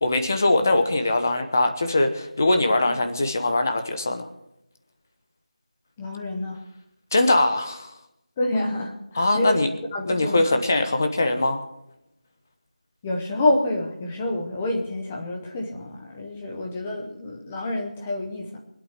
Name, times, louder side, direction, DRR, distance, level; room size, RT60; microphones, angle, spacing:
voice 1, 0.0-4.3 7.1-7.9 9.1-9.7 10.1-11.6, left 2 dB, 20° left, 7 dB, 1.1 m, -22 dB
voice 2, 6.0-6.6 8.4-9.6 9.9-10.5 13.0-18.6, left 1 dB, 5° left, 1 dB, 0.7 m, -27 dB
24.0 x 8.6 x 6.7 m, 0.84 s
figure-of-eight pair, 180°, 4 cm